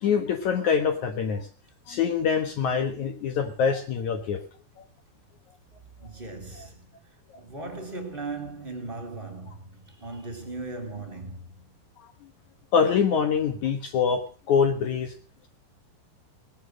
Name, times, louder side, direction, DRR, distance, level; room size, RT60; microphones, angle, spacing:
voice 1, 0.0-1.5 1.9-4.4 12.7-15.1, left 6 dB, 65° left, 2.0 m, -24 dB
voice 2, 6.0-6.9 7.4-11.7, right 3 dB, 15° right, 2.8 m, -38 dB
18.5 x 11.5 x 6.4 m
omnidirectional pair, 5.0 m